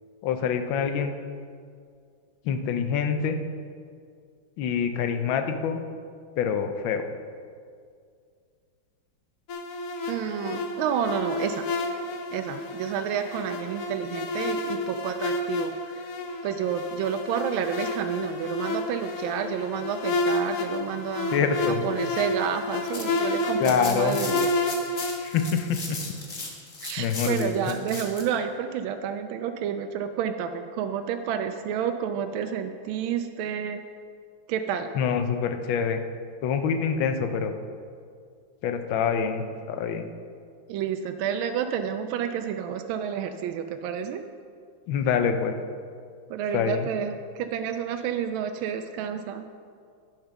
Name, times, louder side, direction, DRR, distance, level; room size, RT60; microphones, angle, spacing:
voice 1, 0.2-1.1 2.4-3.4 4.6-5.8 6.4-7.1 21.3-21.9 23.6-24.2 25.2-26.0 27.0-27.7 34.9-36.0 36.4-37.5 38.6-40.1 44.9-45.5 46.5-46.9, left 7 dB, 75° left, 7 dB, 1.5 m, -26 dB
sound 1, 9.5-25.5, left 2 dB, 60° left, 0.8 m, -30 dB
voice 2, 10.1-11.7 12.3-16.1 16.4-21.5 21.8-24.5 26.8-33.8 34.5-34.9 40.7-44.2 46.3-49.4, right 8 dB, 85° right, 7 dB, 1.4 m, -30 dB
sound 2, 22.6-28.2, left 3 dB, 40° left, 1.5 m, -37 dB
10.0 x 6.6 x 5.9 m, 2.2 s
omnidirectional pair, 2.2 m